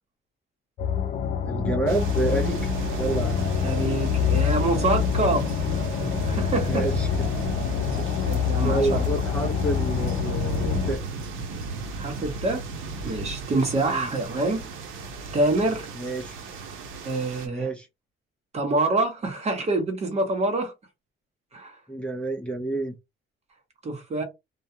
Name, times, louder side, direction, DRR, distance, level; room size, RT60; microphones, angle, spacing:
sound 1, 0.8-11.0, left 6 dB, 45° left, 0.5 m, -26 dB
voice 1, 1.4-3.5 6.7-7.1 8.0-8.2 8.5-11.0 13.9-14.1 15.9-16.3 17.4-17.9 21.9-22.9, right 2 dB, 5° left, 0.6 m, -29 dB
sound 2, 1.9-17.5, right 4 dB, 80° right, 0.8 m, -37 dB
voice 2, 3.6-5.5 6.2-6.9 7.8-7.9 8.2-9.0 12.0-12.6 13.0-14.7 15.3-15.9 17.0-17.7 18.5-20.7 21.5-21.8 23.8-24.2, right 2 dB, 30° right, 0.9 m, -26 dB
2.3 x 2.3 x 2.8 m
cardioid pair, 115°, 20 cm